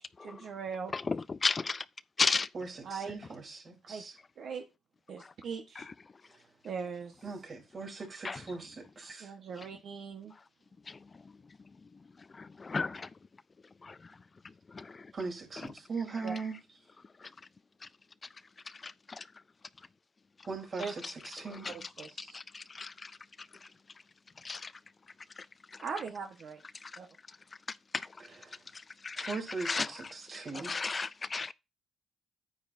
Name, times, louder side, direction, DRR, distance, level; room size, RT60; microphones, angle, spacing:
voice 1, 0.2-0.9 2.8-3.2 3.9-4.1 4.4-4.6 5.1-5.9 6.6-7.1 9.2-10.3 16.2-16.3 20.8-20.9 21.7-22.4 25.8-26.6 27.0-27.1 30.5-30.6, right 6 dB, 60° right, 1.2 m, -40 dB
voice 2, 0.9-1.8 2.2-2.5 5.8-5.9 8.2-8.4 10.9-11.0 12.4-13.1 13.8-14.0 14.7-15.0 17.2-17.3 18.8-19.2 22.2-23.1 24.4-24.7 25.4-25.5 26.8-26.9 27.9-28.1 29.0-29.3 29.7-29.9 30.6-31.5, left 4 dB, 30° left, 0.3 m, -33 dB
voice 3, 2.5-4.2 6.3-6.4 7.2-9.3 15.1-16.6 20.5-21.7 28.2-28.6 29.2-30.8, right 4 dB, 45° right, 3.5 m, -40 dB
9.5 x 8.5 x 2.7 m
cardioid pair, 90°, 0 cm